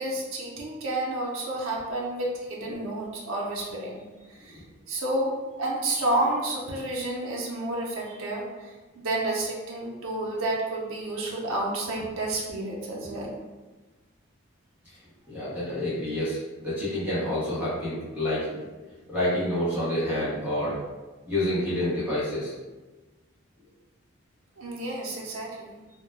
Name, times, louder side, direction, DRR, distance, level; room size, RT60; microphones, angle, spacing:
voice 1, 0.0-5.3 5.6-13.3 24.6-25.8, right 2 dB, 80° right, -3 dB, 0.5 m, -30 dB
voice 2, 15.3-18.6 19.1-20.8 21.3-22.5, left 1 dB, 5° right, -11 dB, 0.7 m, -28 dB
2.1 x 2.1 x 3.2 m, 1.2 s
head